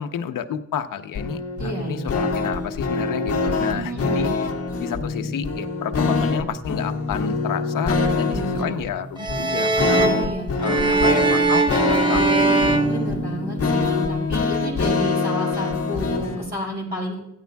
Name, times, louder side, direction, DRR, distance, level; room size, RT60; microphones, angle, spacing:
voice 1, 0.0-4.3 4.8-10.2 10.6-12.5, left 8 dB, 85° left, 7 dB, 0.9 m, -30 dB
sound 1, 1.1-16.5, left 3 dB, 50° left, 2.0 m, -25 dB
voice 2, 1.6-2.2 3.6-4.3 8.2-8.7 9.9-11.1 12.8-17.2, equal, 30° right, -4 dB, 5.2 m, -31 dB
sound 2, 9.2-13.8, right 3 dB, 15° right, 0.9 m, -21 dB
17.0 x 12.0 x 2.3 m, 0.83 s
wide cardioid pair, 175°, 32 cm